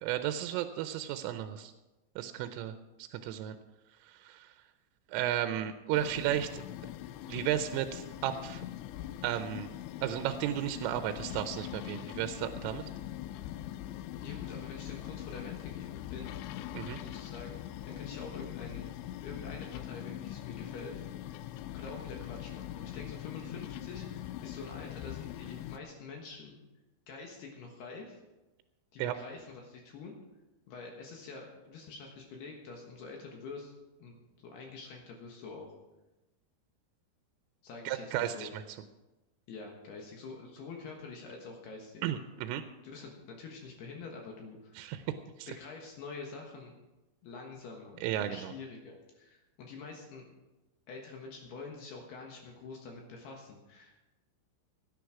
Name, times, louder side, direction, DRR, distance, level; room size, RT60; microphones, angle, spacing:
voice 1, 0.0-1.7 2.2-2.7 3.0-3.6 4.1-4.5 5.1-6.6 7.3-8.6 9.2-9.7 10.0-12.8 16.7-17.0 29.0-29.1 37.9-38.6 42.0-42.6 44.8-45.0 45.4-45.5 48.0-48.5, right 11 dB, 90° right, 9 dB, 3.2 m, -34 dB
sound 1, 5.9-25.8, left 13 dB, 85° left, 2.6 m, -42 dB
voice 2, 14.2-16.3 17.0-18.9 19.2-20.9 21.7-26.6 27.1-28.2 28.9-30.2 30.7-33.7 34.0-35.7 37.6-38.6 39.5-42.0 42.8-44.8 45.5-46.7 47.2-50.3 50.9-54.0, left 4 dB, 65° left, 1 dB, 3.0 m, -46 dB
16.5 x 9.8 x 4.8 m, 1.0 s
omnidirectional pair, 5.7 m